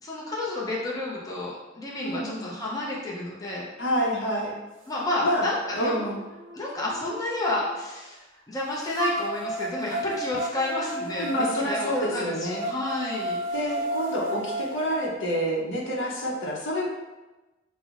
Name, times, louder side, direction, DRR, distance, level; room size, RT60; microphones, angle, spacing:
voice 1, 0.0-3.7 4.9-5.9 6.5-13.4, left 2 dB, 20° left, -5 dB, 0.5 m, -30 dB
voice 2, 2.0-2.5 3.8-4.6 5.2-5.5 5.7-6.2 11.2-12.7 13.5-16.9, equal, 65° left, -2 dB, 0.7 m, -28 dB
sound 1, 5.2-5.3 5.8-7.7 9.0-15.0, right 1 dB, 70° right, 0.5 m, -33 dB
5.4 x 2.0 x 2.4 m, 1.1 s
head